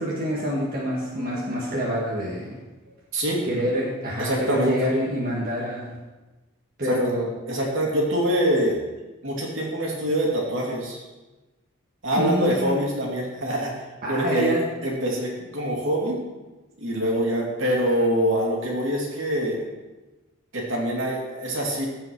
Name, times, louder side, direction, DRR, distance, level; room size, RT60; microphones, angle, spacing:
voice 1, 0.0-2.6 3.5-5.9 6.8-7.3 12.1-12.8 14.0-14.6, equal, 40° right, -6 dB, 1.7 m, -26 dB
voice 2, 3.1-3.4 4.2-4.9 6.8-7.0 7.5-8.8 9.2-11.0 12.0-16.2 16.8-19.6 20.5-21.9, equal, 65° right, -2 dB, 2.8 m, -25 dB
15.0 x 5.5 x 4.7 m, 1.1 s
head